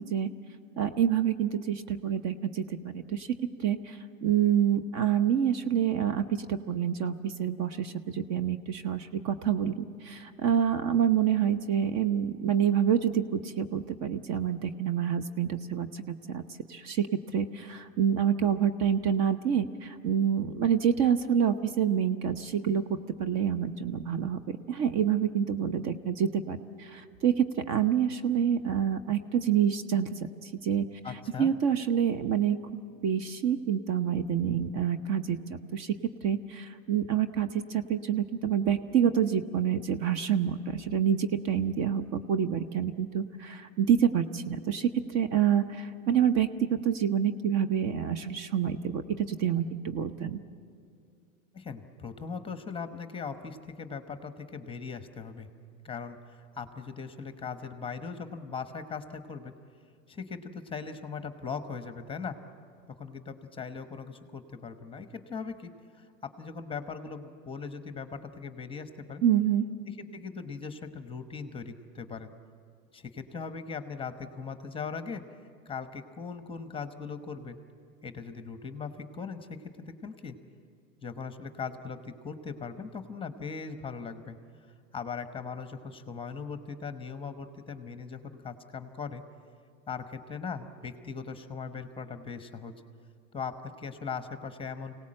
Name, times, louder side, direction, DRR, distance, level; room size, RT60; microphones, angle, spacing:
voice 1, 0.8-3.3 3.6-16.4 16.7-17.1 17.3-24.4 24.7-30.9 31.4-32.6 33.0-36.0 36.2-50.4 69.2-69.7, right 8 dB, 40° right, 10 dB, 0.9 m, -27 dB
voice 2, 31.0-31.5 51.5-55.5 55.8-59.5 60.1-62.4 63.0-65.7 66.0-69.2 70.0-72.3 72.9-75.2 75.7-77.6 78.0-79.5 79.8-80.4 81.0-84.4 84.9-89.2 89.9-92.7 93.3-95.0, left 5 dB, 15° left, 9 dB, 1.1 m, -39 dB
25.0 x 18.0 x 7.7 m, 2.3 s
hypercardioid pair, 115°, 41 cm